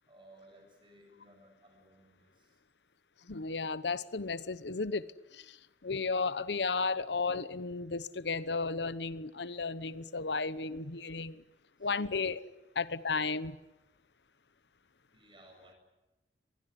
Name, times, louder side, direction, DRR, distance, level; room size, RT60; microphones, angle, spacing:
voice 1, 0.1-2.6 11.8-11.9 15.1-15.8, right 1 dB, 30° right, 7.6 m, -59 dB
voice 2, 3.3-5.1 5.3-11.4 11.8-12.4 12.7-13.6, left 4 dB, 80° left, 1.0 m, -34 dB
24.0 x 21.0 x 9.8 m
head